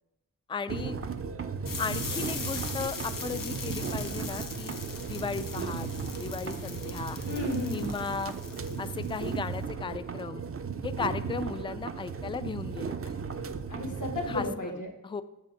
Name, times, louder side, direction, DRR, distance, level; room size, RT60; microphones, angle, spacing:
voice 1, 0.5-1.0 1.8-4.7 5.1-5.9 6.2-7.2 7.7-8.4 8.8-10.4 10.8-13.2 14.3-14.5 15.0-15.2, left 5 dB, 15° left, 13 dB, 0.3 m, -36 dB
sound 1, 0.7-14.5, right 6 dB, 45° right, 0.5 m, -36 dB
sound 2, 1.7-9.6, left 4 dB, 90° left, 0.9 m, -40 dB
voice 2, 7.3-7.9 13.7-14.9, left 2 dB, 70° left, 1 dB, 1.6 m, -33 dB
8.4 x 3.6 x 6.5 m, 0.92 s
wide cardioid pair, 85°, 32 cm